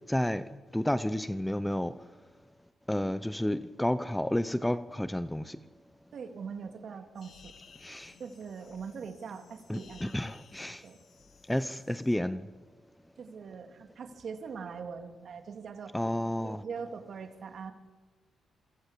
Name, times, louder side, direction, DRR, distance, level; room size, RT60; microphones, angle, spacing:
voice 1, 0.1-0.4 0.7-1.9 2.9-5.6 7.8-8.1 9.7-10.8 11.5-12.5 15.9-16.6, left 1 dB, 5° left, 0.8 m, -31 dB
voice 2, 6.1-7.5 8.2-10.1 10.8-11.0 13.2-15.9 16.4-17.7, right 6 dB, 55° right, 3.1 m, -42 dB
sound 1, 7.1-12.1, left 6 dB, 55° left, 3.0 m, -57 dB
28.0 x 23.0 x 8.5 m
cardioid pair, 125°, 0 cm